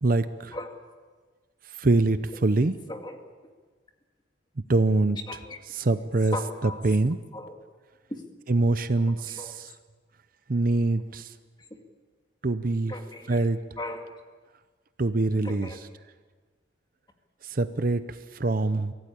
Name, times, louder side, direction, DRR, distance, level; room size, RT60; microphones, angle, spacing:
voice 1, 0.0-0.6 1.8-2.8 4.7-5.2 5.7-6.4 6.6-7.2 8.5-9.7 10.5-11.3 12.4-12.9 13.3-13.6 15.0-15.7 17.4-18.0 18.3-18.9, right 2 dB, 45° right, 12 dB, 0.7 m, -24 dB
voice 2, 2.9-3.2 5.3-5.6 6.3-6.8 7.3-7.6 8.1-8.2 9.0-9.6 11.7-11.8 12.9-13.4 13.8-14.1 15.4-15.8, left 2 dB, 20° left, 4 dB, 2.1 m, -38 dB
24.0 x 16.5 x 8.6 m, 1.4 s
head